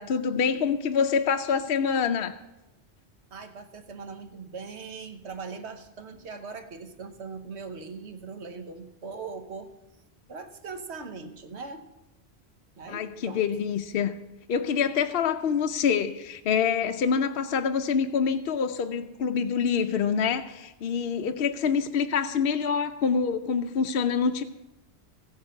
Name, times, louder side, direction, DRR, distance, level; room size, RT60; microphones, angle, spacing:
voice 1, 0.0-2.3 12.9-14.1 14.5-24.4, left 6 dB, 65° left, 6 dB, 0.8 m, -26 dB
voice 2, 3.3-9.7 10.3-11.9 12.8-13.4 21.2-21.5, right 4 dB, 80° right, 8 dB, 1.3 m, -40 dB
15.0 x 8.4 x 6.3 m, 0.99 s
omnidirectional pair, 1.1 m